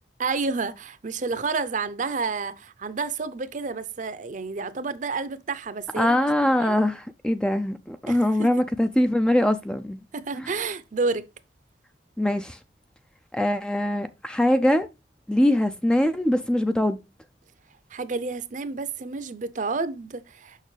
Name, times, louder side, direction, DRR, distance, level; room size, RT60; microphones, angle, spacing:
voice 1, 0.2-6.3 6.6-6.7 8.1-8.5 10.1-11.2 17.9-20.6, right 4 dB, 45° right, 0.6 m, -30 dB
voice 2, 6.0-10.0 10.4-10.5 12.2-12.6 13.3-14.9 15.3-17.0, left 1 dB, 5° left, 0.3 m, -22 dB
6.5 x 6.1 x 3.2 m
head